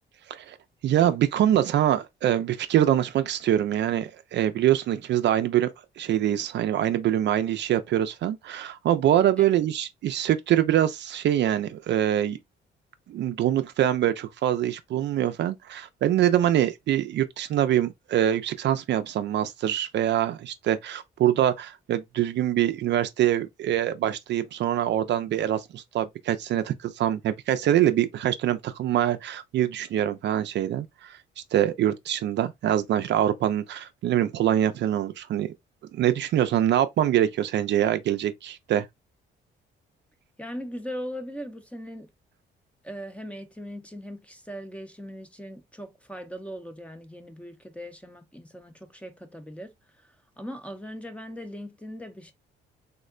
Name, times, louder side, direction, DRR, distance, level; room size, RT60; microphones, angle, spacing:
voice 1, 0.8-5.7 6.0-12.4 13.1-31.2 31.5-35.5 35.9-38.9, right 11 dB, 65° right, 0.4 m, -24 dB
voice 2, 40.4-42.1 42.8-52.3, equal, 5° left, 0.6 m, -39 dB
3.6 x 2.1 x 2.4 m
cardioid pair, 90°, 20 cm